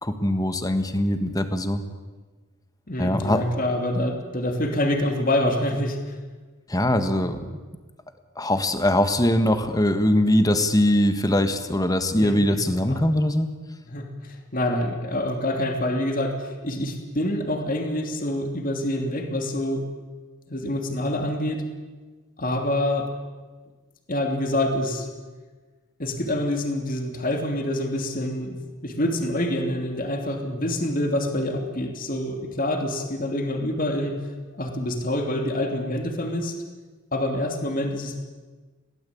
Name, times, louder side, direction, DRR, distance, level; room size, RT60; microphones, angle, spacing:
voice 1, 0.0-1.8 3.0-3.4 6.7-7.4 8.4-13.5, left 1 dB, 20° left, 9 dB, 1.6 m, -22 dB
voice 2, 2.9-6.0 12.2-13.0 13.9-19.9 20.5-21.6 22.4-23.1 24.1-25.1 26.0-28.6 28.8-34.2 34.5-36.5 37.1-38.2, left 1 dB, 40° left, 4 dB, 3.0 m, -26 dB
22.0 x 17.0 x 8.7 m, 1.4 s
head